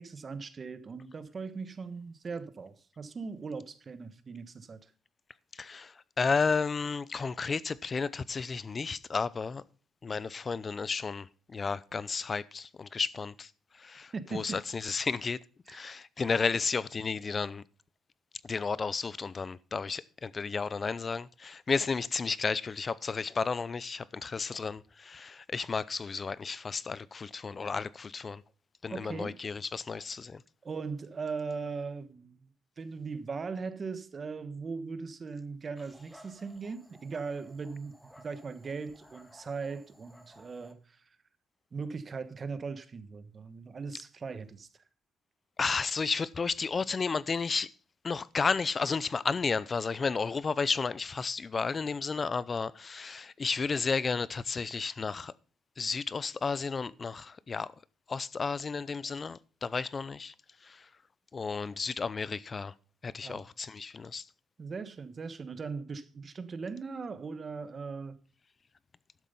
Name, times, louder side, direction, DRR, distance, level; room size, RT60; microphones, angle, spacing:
voice 1, 0.0-4.9 14.1-14.6 15.7-15.8 28.9-29.4 30.6-32.5 32.8-41.1 41.7-44.8 63.2-63.5 64.6-68.2, right 4 dB, 40° right, 1.2 m, -39 dB
voice 2, 5.5-9.6 10.0-15.4 15.7-17.6 18.4-28.4 28.8-30.4 45.6-47.7 48.0-55.3 55.8-57.7 58.1-60.3 60.6-60.9 61.3-62.7 63.0-64.2, left 5 dB, 35° left, 0.6 m, -32 dB
Dog, 35.8-40.7, equal, ahead, 1.8 m, -57 dB
12.0 x 7.3 x 5.5 m
cardioid pair, 90°, 0 cm